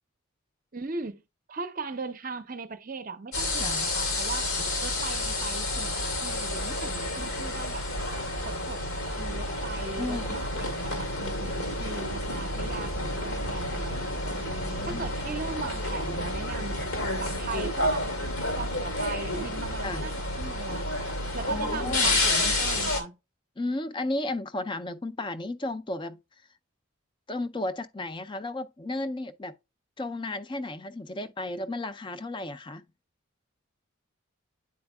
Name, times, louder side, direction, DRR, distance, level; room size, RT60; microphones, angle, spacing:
voice 1, 0.7-1.2 1.5-4.5 4.8-5.9 6.2-7.9 8.5-14.2 14.8-16.8 17.2-18.1 18.6-21.0 21.3-23.2, right 4 dB, 40° right, 0.6 m, -38 dB
sound 1, 3.3-23.0, left 1 dB, 85° left, 2.1 m, -30 dB
voice 2, 9.8-10.3 13.1-13.2 14.5-15.1 19.8-20.0 21.5-22.2 23.6-26.2 27.3-29.5 30.0-32.8, left 2 dB, 20° left, 0.4 m, -34 dB
9.5 x 4.4 x 2.2 m
head